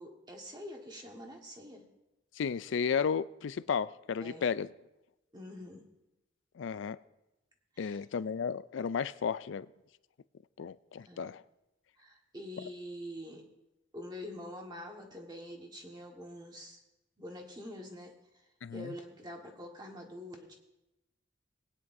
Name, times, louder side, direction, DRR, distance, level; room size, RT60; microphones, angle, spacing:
voice 1, 0.0-1.9 4.2-4.5 5.3-5.8 7.7-8.0 11.1-11.3 12.0-13.5 13.9-16.8 17.2-18.4 18.7-20.5, left 1 dB, 20° right, 1.6 m, -45 dB
voice 2, 2.4-4.7 6.6-7.0 7.8-9.7 10.6-11.4 18.6-18.9, left 6 dB, 75° left, 0.4 m, -33 dB
20.0 x 9.7 x 2.7 m
head